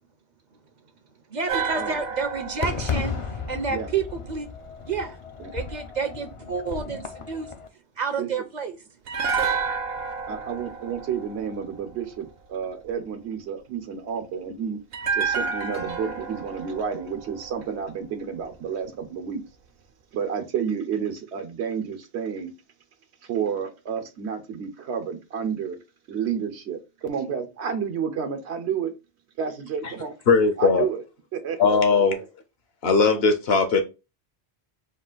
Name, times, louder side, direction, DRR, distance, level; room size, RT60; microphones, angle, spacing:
voice 1, 1.3-3.2 3.5-4.5 4.9-5.2 5.5-7.5 8.0-8.8, right 5 dB, 50° right, 0.6 m, -29 dB
sound 1, 1.5-4.7 9.1-12.3 14.9-18.1 18.4-18.5, right 5 dB, 70° right, 0.9 m, -31 dB
Fireworks, 2.6-7.7, left 6 dB, 50° left, 0.4 m, -34 dB
voice 2, 10.3-14.8 15.1-19.4 20.1-22.5 23.2-25.8 26.1-28.9 29.4-30.1 30.6-31.0 31.3-31.8, right 7 dB, 85° right, 1.1 m, -30 dB
voice 3, 30.3-30.9 31.6-32.2 32.8-33.8, left 4 dB, 70° left, 1.1 m, -19 dB
4.3 x 2.4 x 3.8 m
omnidirectional pair, 1.1 m